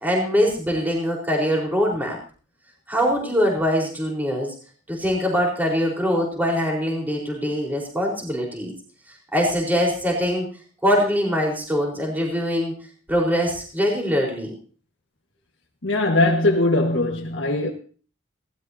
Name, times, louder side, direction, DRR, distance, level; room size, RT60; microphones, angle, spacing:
voice 1, 0.0-2.2 2.9-4.5 4.9-8.7 9.3-10.5 10.8-12.7 13.1-14.5, equal, 10° right, 4.4 m, -23 dB
voice 2, 15.8-17.7, left 2 dB, 75° left, 1.7 m, -20 dB
19.5 x 17.0 x 2.8 m
head